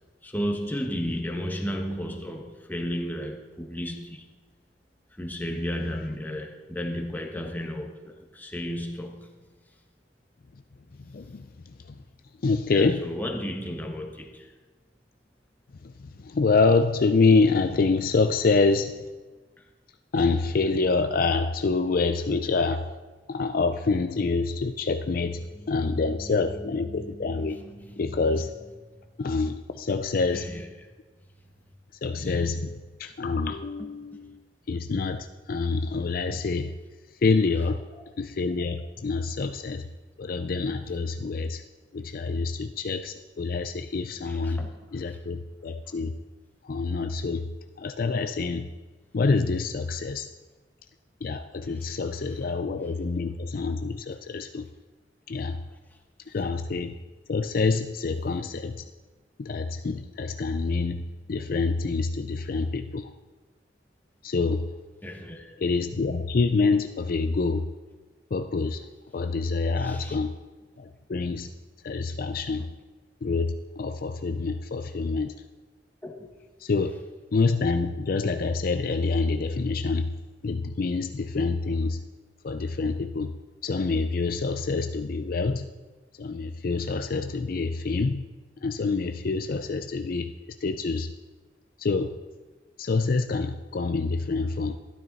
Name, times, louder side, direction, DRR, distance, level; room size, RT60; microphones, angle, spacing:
voice 1, 0.2-4.3 5.2-9.3 12.7-14.5 19.6-19.7 25.5-28.4 30.3-30.7 32.2-32.4 33.8-33.9 44.2-44.7 45.0-45.2 51.8-52.0 65.0-65.6 69.8-70.2 76.0-76.3, equal, 10° left, 2 dB, 1.3 m, -34 dB
voice 2, 11.1-11.5 12.4-13.0 15.8-19.0 20.1-22.8 23.3-25.4 25.7-27.6 28.0-28.5 29.2-30.5 32.0-32.7 33.0-34.4 34.7-36.7 37.2-37.8 38.2-39.9 40.2-41.6 41.9-44.6 44.9-46.1 46.6-47.5 47.8-48.7 49.1-50.3 51.2-54.7 55.3-55.6 56.3-57.0 57.3-58.9 59.4-61.0 61.3-63.1 64.2-64.7 65.6-67.7 68.3-68.8 69.1-70.3 70.8-71.5 71.8-72.7 73.2-75.3 76.6-76.9 77.3-80.1 80.4-82.0 82.4-83.3 83.6-85.7 86.2-88.2 88.6-90.3 90.6-91.1 91.8-92.1 92.8-94.8, left 4 dB, 50° left, 8 dB, 0.4 m, -26 dB
12.0 x 12.0 x 4.1 m, 1.3 s
head